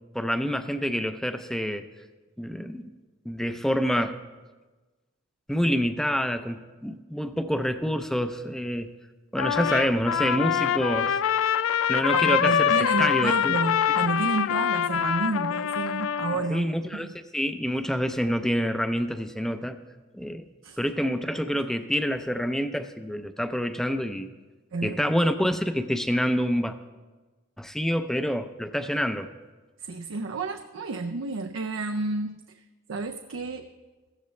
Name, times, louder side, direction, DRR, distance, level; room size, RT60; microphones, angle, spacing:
voice 1, 0.1-1.8 2.4-2.8 3.3-4.2 5.5-8.9 9.3-11.2 11.9-13.6 16.5-19.8 20.1-20.5 20.8-24.3 24.8-26.7 27.6-29.3, equal, ahead, 9 dB, 0.5 m, -27 dB
Trumpet, 9.4-16.5, left 9 dB, 85° left, 0.4 m, -25 dB
voice 2, 12.1-16.7 16.9-17.1 20.6-20.8 24.7-25.2 29.8-32.3 32.9-33.7, right 3 dB, 80° right, 5 dB, 0.6 m, -30 dB
15.5 x 13.5 x 3.2 m, 1.3 s
head